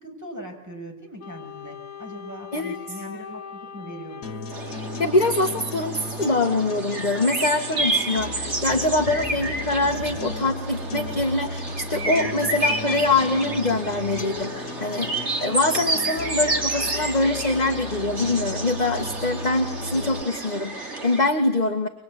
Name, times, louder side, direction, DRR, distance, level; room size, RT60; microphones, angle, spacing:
voice 1, 0.0-4.4, right 1 dB, 10° right, 2 dB, 6.4 m, -40 dB
Wind instrument woodwind instrument, 1.2-5.8, left 9 dB, 80° left, 2.0 m, -41 dB
sound 1, 4.2-20.2, left 3 dB, 60° left, 2.0 m, -36 dB
sound 2, 4.5-21.3, right 2 dB, 35° right, 2.7 m, -30 dB
voice 2, 5.0-21.9, left 2 dB, 20° left, 3 dB, 2.0 m, -24 dB
26.5 x 24.0 x 9.4 m, 1.0 s
omnidirectional pair, 2.0 m